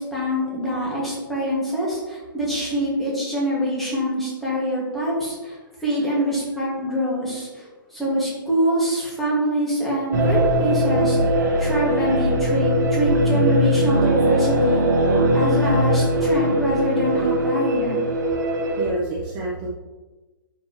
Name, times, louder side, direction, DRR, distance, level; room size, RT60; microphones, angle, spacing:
voice 1, 0.0-11.2 11.6-14.8 15.3-18.0, equal, ahead, -8 dB, 2.3 m, -24 dB
sound 1, 10.1-18.9, right 1 dB, 50° right, 1.8 m, -20 dB
voice 2, 13.3-13.6 18.8-19.7, right 2 dB, 25° right, -4 dB, 1.1 m, -29 dB
11.0 x 5.2 x 3.3 m, 1.2 s
hypercardioid pair, 160°, 12 cm